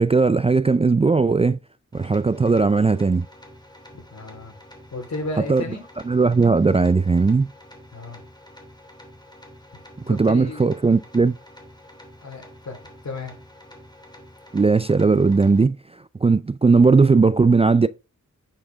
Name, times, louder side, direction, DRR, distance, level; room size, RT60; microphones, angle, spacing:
voice 1, 0.0-1.6 1.9-3.3 5.5-5.6 6.1-7.5 10.0-11.4 14.5-15.8 16.2-17.9, right 4 dB, 20° right, 0.4 m, -18 dB
sound 1, 1.9-15.6, left 1 dB, 15° left, 2.8 m, -47 dB
voice 2, 3.9-4.5 4.9-5.8 7.9-8.2 10.1-10.7 12.2-12.8 13.0-13.3, left 2 dB, 60° left, 3.7 m, -33 dB
9.7 x 6.0 x 3.5 m
cardioid pair, 70°, 31 cm